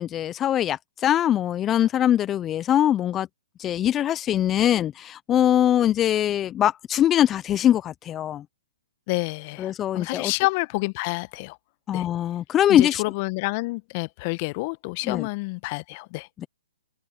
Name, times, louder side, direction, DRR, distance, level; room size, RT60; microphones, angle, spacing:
voice 1, 0.0-3.3 3.6-8.4 9.6-10.3 11.9-13.0 15.0-15.3, left 11 dB, 20° left, 0.8 m, -22 dB
voice 2, 9.1-11.6 11.9-12.1 12.7-16.3, left 25 dB, 40° left, 1.3 m, -28 dB
open air
figure-of-eight pair, 125°, 0 cm